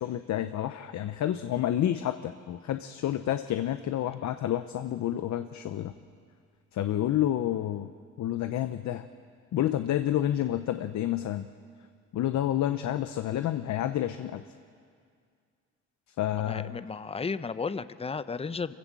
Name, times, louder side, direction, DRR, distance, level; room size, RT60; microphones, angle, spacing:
voice 1, 0.0-5.9 6.7-7.9 8.2-9.1 9.5-11.5 12.1-14.4 16.2-16.8, left 12 dB, 70° left, 9 dB, 0.8 m, -29 dB
voice 2, 16.5-18.7, left 5 dB, 20° left, 14 dB, 0.7 m, -33 dB
25.5 x 15.5 x 7.6 m, 2.2 s
cardioid pair, 90°, 30 cm